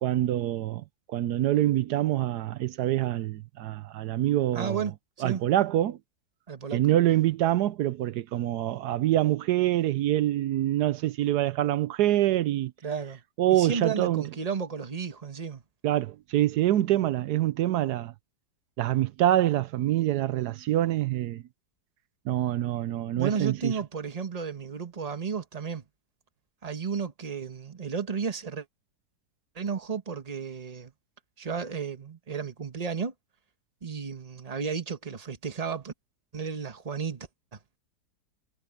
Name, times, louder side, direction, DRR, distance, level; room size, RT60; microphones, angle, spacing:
voice 1, 0.0-4.9 5.2-6.0 6.7-12.7 13.4-14.2 15.8-18.1 18.8-21.4 22.3-23.8, right 13 dB, 80° right, 1.2 m, -25 dB
voice 2, 4.5-4.9 5.2-5.4 6.5-6.8 12.8-13.2 13.5-15.6 23.1-25.8 26.6-28.6 29.5-30.9 31.4-33.1 33.8-35.9 36.3-37.6, right 6 dB, 25° right, 1.3 m, -33 dB
omnidirectional pair, 1.7 m